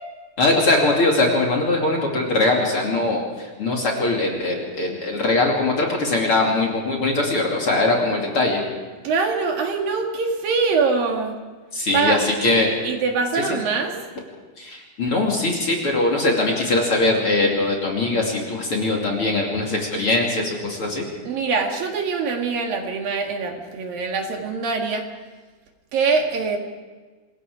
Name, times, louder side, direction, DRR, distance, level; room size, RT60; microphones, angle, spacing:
voice 1, 0.4-8.6 11.7-12.7 13.3-13.6 14.6-21.1, left 2 dB, 35° left, -1 dB, 3.1 m, -21 dB
voice 2, 9.0-11.4 11.9-12.2 12.8-14.0 21.3-25.1 25.9-26.6, right 4 dB, 65° right, 3 dB, 3.5 m, -23 dB
27.0 x 21.0 x 5.0 m, 1.4 s
omnidirectional pair, 4.6 m